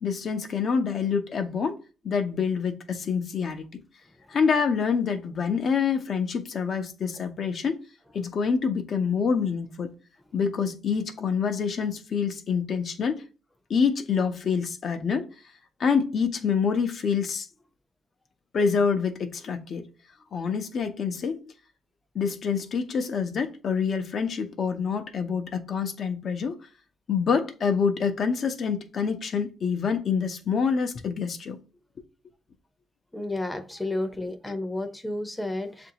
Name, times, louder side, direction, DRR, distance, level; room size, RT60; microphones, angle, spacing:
voice 1, 0.0-1.8 2.0-3.7 4.3-7.8 8.1-9.9 10.3-13.2 13.7-15.3 15.8-17.5 18.5-19.8 20.3-21.5 22.1-26.6 27.1-31.6, left 6 dB, 55° left, 0.6 m, -26 dB
voice 2, 33.1-35.9, left 2 dB, 10° left, 0.7 m, -31 dB
6.8 x 2.5 x 2.9 m
cardioid pair, 90°, 0 cm